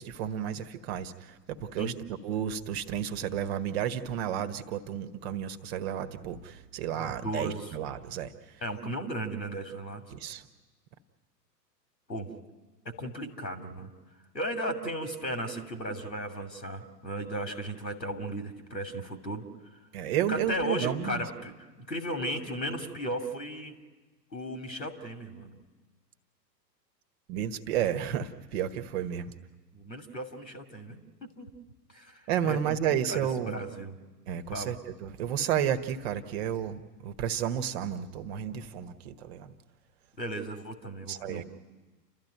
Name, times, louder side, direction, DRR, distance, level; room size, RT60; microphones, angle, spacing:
voice 1, 0.0-8.6 10.1-10.5 19.9-21.2 27.3-29.3 32.3-33.6 34.3-39.5 41.1-41.5, right 9 dB, 40° right, 10 dB, 1.3 m, -32 dB
voice 2, 7.0-7.7 8.6-10.0 12.1-12.3 12.8-13.9 14.3-19.5 20.3-21.5 21.9-23.8 24.3-25.6 29.7-31.5 31.9-32.8 33.1-33.9 34.5-34.8 40.2-41.5, right 1 dB, 85° left, 5 dB, 2.8 m, -35 dB
29.5 x 13.0 x 9.1 m, 1.3 s
figure-of-eight pair, 100°, 50 cm